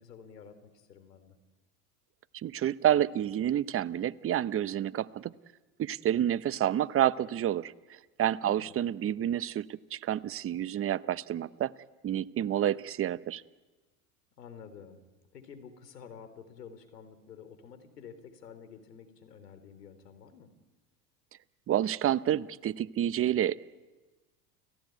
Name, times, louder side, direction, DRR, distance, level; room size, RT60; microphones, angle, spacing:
voice 1, 0.0-1.4 8.4-8.8 14.4-15.0 15.3-20.5, left 7 dB, 85° left, 10 dB, 3.6 m, -50 dB
voice 2, 2.4-5.3 5.8-7.7 8.2-11.7 12.0-13.4 21.7-23.6, right 11 dB, 30° right, 16 dB, 0.8 m, -29 dB
30.0 x 16.0 x 9.3 m, 1.2 s
hypercardioid pair, 90°, 47 cm